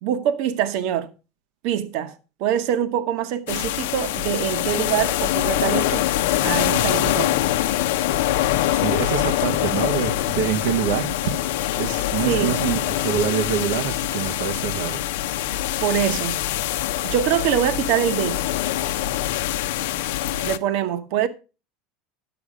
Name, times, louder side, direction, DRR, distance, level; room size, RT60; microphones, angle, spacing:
voice 1, 0.0-1.1 1.6-2.1 2.4-6.0 6.4-7.4 12.2-12.6 15.8-16.4 17.0-18.4 20.4-21.3, right 9 dB, 60° right, 1.1 m, -24 dB
sound 1, 3.5-20.6, left 13 dB, 85° left, 0.7 m, -24 dB
voice 2, 8.7-11.5 11.8-15.0, right 8 dB, 85° right, 0.9 m, -26 dB
11.0 x 7.1 x 5.0 m
supercardioid pair, 150°, 0 cm